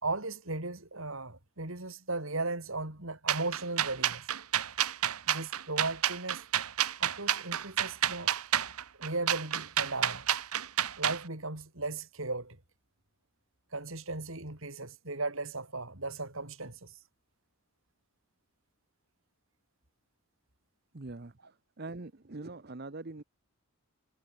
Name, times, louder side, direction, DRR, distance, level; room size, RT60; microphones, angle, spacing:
voice 1, 0.0-4.3 5.3-6.4 7.0-8.3 9.0-10.3 11.0-12.6 13.7-17.0, right 2 dB, 65° right, 4.0 m, -36 dB
sound 1, 3.3-11.2, right 10 dB, 85° right, 1.4 m, -30 dB
voice 2, 20.9-21.3 21.8-23.2, right 2 dB, 45° right, 0.9 m, -42 dB
head